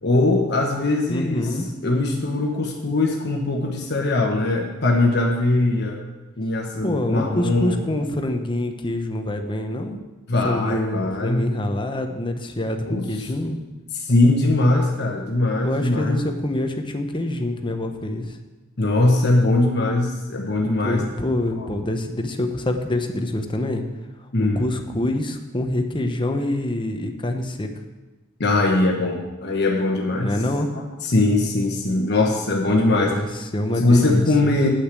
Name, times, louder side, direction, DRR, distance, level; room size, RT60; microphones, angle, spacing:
voice 1, 0.0-6.0 6.4-7.8 10.3-11.5 12.9-13.2 13.9-16.2 18.8-21.1 21.6-21.7 24.3-24.6 28.4-30.3 30.7-33.2 33.8-34.7, left 2 dB, 55° left, 0 dB, 1.1 m, -21 dB
voice 2, 1.1-1.7 6.8-10.0 10.4-13.6 15.6-18.4 20.8-23.8 24.4-27.7 30.2-30.7 32.9-34.5, left 1 dB, 25° left, 5 dB, 0.9 m, -26 dB
8.3 x 6.4 x 8.3 m, 1.1 s
head